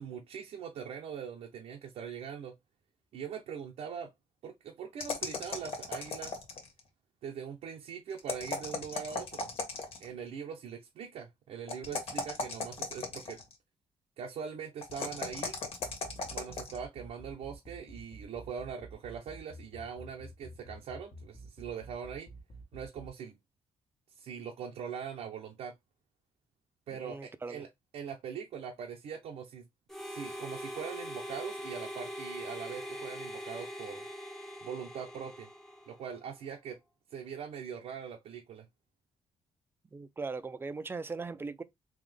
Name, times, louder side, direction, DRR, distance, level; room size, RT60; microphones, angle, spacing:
voice 1, 0.0-2.5 3.1-4.1 4.4-6.4 7.2-9.5 10.0-13.4 14.2-15.6 16.3-22.3 22.7-23.4 24.2-25.7 26.9-27.7 27.9-29.6 30.1-34.0 34.6-35.5 35.9-36.8 37.1-38.7, right 7 dB, 85° right, 0.8 m, -42 dB
sound 1, 5.0-6.8 8.2-10.1 11.7-13.5 14.8-16.8, left 3 dB, 65° left, 1.5 m, -37 dB
sound 2, 15.8-23.1, right 1 dB, 45° left, 1.3 m, -49 dB
voice 2, 26.9-27.6 39.9-41.6, right 4 dB, 20° right, 0.5 m, -39 dB
Harmonica, 29.9-36.3, equal, 5° left, 0.8 m, -42 dB
3.8 x 3.0 x 3.4 m
cardioid pair, 135°, 11 cm